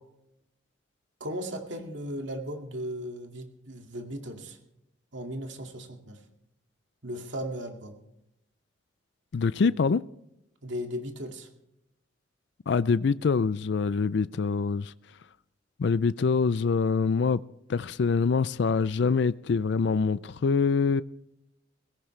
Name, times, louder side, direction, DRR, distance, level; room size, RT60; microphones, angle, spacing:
voice 1, 1.2-4.6 5.1-6.2 7.0-8.0 10.6-11.5, equal, 70° right, 4 dB, 2.2 m, -36 dB
voice 2, 9.3-10.0 12.7-14.9 15.8-17.4 17.7-21.0, left 5 dB, 60° left, 17 dB, 0.4 m, -25 dB
17.5 x 16.5 x 3.3 m, 0.82 s
head